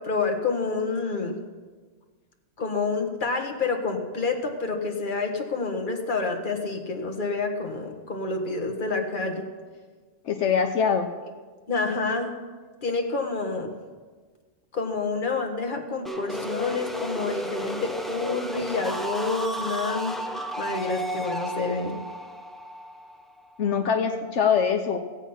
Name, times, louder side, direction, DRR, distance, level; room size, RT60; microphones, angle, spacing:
voice 1, 0.0-1.4 2.6-9.5 11.7-12.3 12.8-13.7 14.7-20.2 20.6-22.0, left 3 dB, 45° left, 3 dB, 1.6 m, -28 dB
voice 2, 10.2-11.1 23.6-25.0, left 6 dB, 80° left, 5 dB, 1.1 m, -23 dB
sound 1, 16.0-23.8, equal, ahead, 0.6 m, -33 dB
16.5 x 8.3 x 5.7 m, 1.4 s
omnidirectional pair, 1.2 m